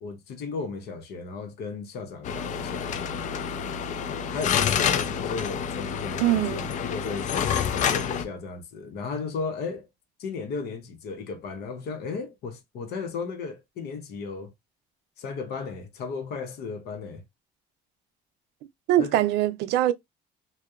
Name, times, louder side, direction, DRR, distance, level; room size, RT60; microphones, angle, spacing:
voice 1, 0.0-3.0 4.2-7.3 7.8-9.9 10.2-14.5 15.2-17.2 19.0-19.1, left 4 dB, 70° left, 0.8 m, -35 dB
sound 1, 2.2-8.2, left 8 dB, 45° left, 0.4 m, -28 dB
voice 2, 6.2-6.7 18.9-19.9, right 13 dB, 85° right, 0.4 m, -22 dB
2.6 x 2.0 x 2.3 m
cardioid pair, 110°, 17 cm